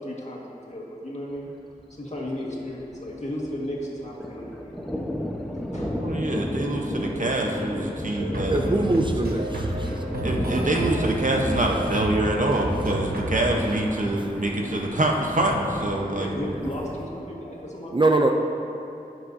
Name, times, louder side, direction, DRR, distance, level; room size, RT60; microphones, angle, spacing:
voice 1, 0.0-1.5 1.9-4.8 5.7-6.0 16.1-17.9, left 1 dB, 50° left, -4 dB, 1.8 m, -34 dB
Thunder, 1.3-1.5 1.8-1.9 2.2-3.7 4.0-16.9, equal, ahead, 1.0 m, -33 dB
voice 2, 6.0-8.6 10.2-16.3, right 1 dB, 60° right, 0 dB, 1.0 m, -25 dB
sound 1, 8.1-13.7, right 1 dB, 90° right, 1.0 m, -30 dB
voice 3, 8.5-9.9 17.9-18.3, right 2 dB, 35° right, 3 dB, 0.5 m, -22 dB
15.5 x 6.1 x 2.7 m, 2.8 s
wide cardioid pair, 60°, 15 cm